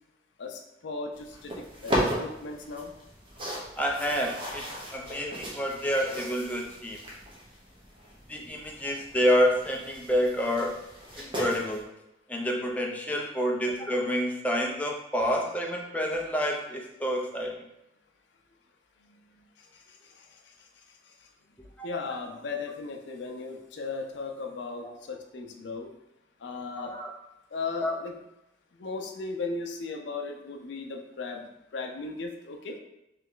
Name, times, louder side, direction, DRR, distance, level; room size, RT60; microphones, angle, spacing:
voice 1, 0.4-2.9 19.9-20.5 21.8-25.9 26.4-26.9 27.5-28.2 28.8-32.8, left 3 dB, 75° left, 2 dB, 0.5 m, -37 dB
sound 1, 1.1-11.8, equal, 30° right, 0.9 m, -36 dB
voice 2, 3.8-4.6 4.9-7.0 8.3-10.8 11.2-11.8 12.3-17.6 21.8-21.9 26.8-27.1 27.8-27.9, equal, 10° left, 0 dB, 0.5 m, -28 dB
3.3 x 3.0 x 3.8 m, 0.88 s
head